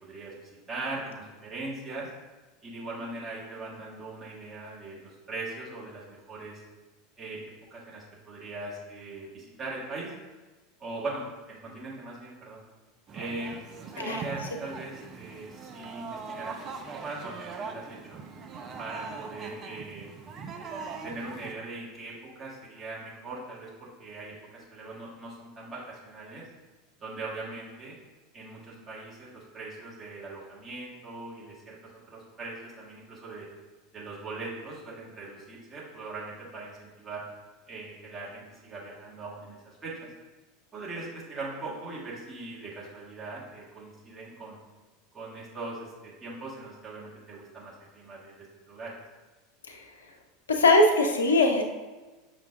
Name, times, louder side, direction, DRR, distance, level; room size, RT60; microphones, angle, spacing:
voice 1, 0.0-2.1 2.6-6.6 7.2-10.1 10.8-12.6 13.1-13.6 13.9-18.2 18.8-20.1 21.0-26.4 27.0-27.9 28.3-31.8 32.1-33.5 33.9-37.2 37.7-40.1 40.7-44.6 45.1-48.3 48.7-49.0, right 2 dB, 20° right, -7 dB, 1.4 m, -40 dB
sound 1, 13.1-21.5, right 5 dB, 35° right, 0.4 m, -41 dB
voice 2, 50.5-51.6, left 2 dB, 75° left, 4 dB, 0.5 m, -21 dB
5.8 x 2.2 x 3.5 m, 1.2 s
figure-of-eight pair, 80°, 0 cm